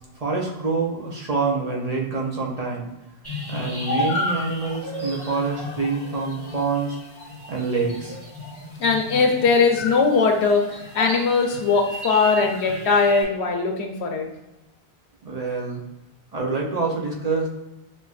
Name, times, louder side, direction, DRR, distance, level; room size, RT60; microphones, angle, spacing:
voice 1, 0.1-2.9 3.5-7.0 7.5-8.2 15.2-15.8 16.3-17.5, right 4 dB, 45° right, -2 dB, 0.6 m, -26 dB
sound 1, 3.2-13.2, left 1 dB, 15° left, 1.5 m, -32 dB
voice 2, 8.8-10.6 10.9-14.2, left 4 dB, 85° left, 3 dB, 1.0 m, -20 dB
6.2 x 2.5 x 2.4 m, 0.99 s
omnidirectional pair, 1.1 m